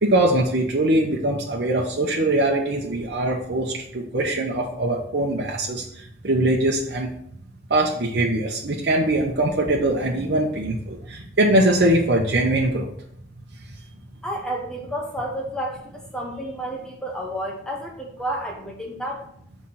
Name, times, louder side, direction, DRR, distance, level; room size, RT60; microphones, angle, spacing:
voice 1, 0.0-5.8 6.2-7.1 7.7-12.9, right 1 dB, 80° right, -1 dB, 1.0 m, -22 dB
voice 2, 14.2-19.3, right 1 dB, 5° left, -1 dB, 1.2 m, -31 dB
6.5 x 4.5 x 5.7 m, 0.69 s
head